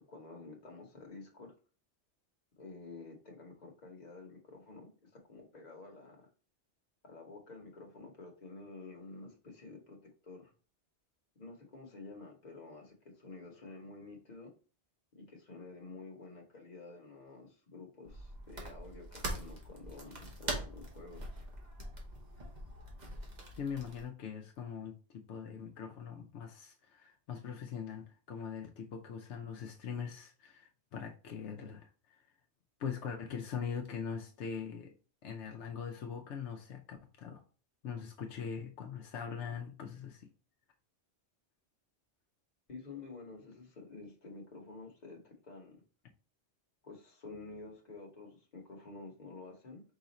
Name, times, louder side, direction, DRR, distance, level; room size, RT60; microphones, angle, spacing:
voice 1, 0.0-1.5 2.6-6.3 7.0-10.5 11.4-14.5 15.1-21.2 42.7-45.8 46.8-49.8, left 3 dB, 40° left, 1.1 m, -50 dB
sound 1, 18.1-24.1, right 1 dB, 40° right, 1.1 m, -43 dB
voice 2, 23.6-32.3 32.8-34.9 35.2-37.4 37.8-40.3, left 7 dB, 80° left, 0.9 m, -42 dB
4.9 x 2.5 x 4.0 m
omnidirectional pair, 1.2 m